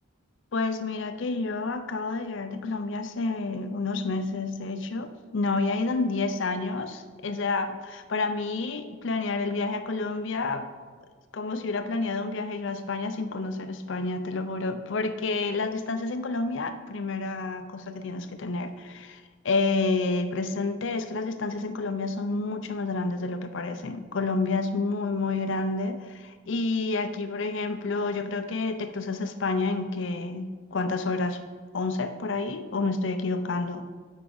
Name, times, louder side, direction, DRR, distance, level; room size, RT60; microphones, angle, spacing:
voice 1, 0.5-10.7 11.3-31.4 31.7-33.9, left 3 dB, 60° left, 9 dB, 0.5 m, -29 dB
9.4 x 6.0 x 3.9 m, 1.5 s
head